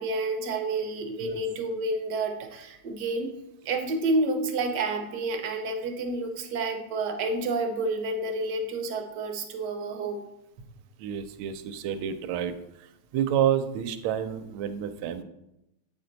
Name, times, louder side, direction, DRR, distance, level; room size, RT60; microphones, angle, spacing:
voice 1, 0.0-3.3 3.6-10.2, right 2 dB, 60° right, 4 dB, 1.2 m, -29 dB
voice 2, 11.0-12.5 13.1-15.2, right 9 dB, 80° right, 9 dB, 1.4 m, -29 dB
8.1 x 4.3 x 3.9 m, 0.88 s
omnidirectional pair, 2.3 m